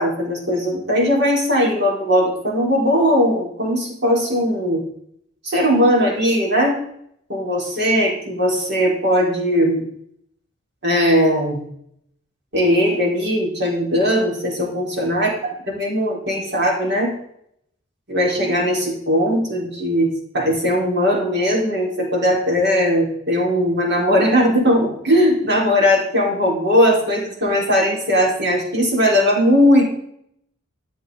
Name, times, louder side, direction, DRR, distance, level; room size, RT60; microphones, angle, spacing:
voice 1, 0.0-4.8 5.4-6.8 7.3-9.8 10.8-11.6 12.5-15.4 15.7-17.1 18.1-29.8, equal, 60° right, -2 dB, 4.5 m, -19 dB
13.5 x 10.5 x 4.0 m, 0.70 s
head